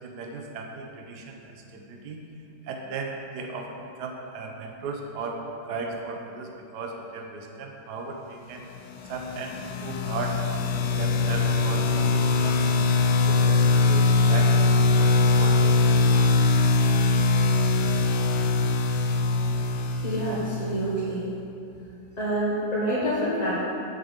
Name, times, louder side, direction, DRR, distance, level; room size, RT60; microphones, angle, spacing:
voice 1, 0.0-2.2 2.6-8.6 9.1-10.7 11.0-12.8 13.2-14.7 15.0-16.0 16.3-16.4, right 3 dB, 75° right, 2 dB, 1.4 m, -36 dB
sound 1, 9.0-20.8, left 3 dB, 80° left, 1.2 m, -22 dB
voice 2, 20.0-21.3 22.2-23.5, equal, 25° left, -9 dB, 1.3 m, -27 dB
7.4 x 5.1 x 7.3 m, 2.6 s
omnidirectional pair, 1.8 m